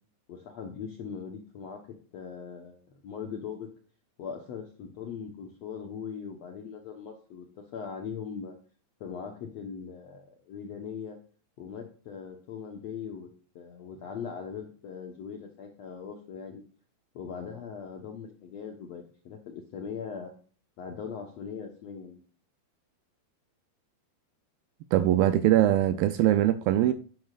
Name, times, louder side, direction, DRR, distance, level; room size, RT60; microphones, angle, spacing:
voice 1, 0.3-1.9 2.1-3.7 4.2-7.5 7.7-8.5 9.0-11.2 11.6-13.3 13.5-16.6 17.1-20.3 20.8-22.2, left 6 dB, 70° left, 1.6 m, -40 dB
voice 2, 24.9-26.9, right 13 dB, 80° right, 2.2 m, -22 dB
11.5 x 10.5 x 2.5 m
omnidirectional pair, 4.7 m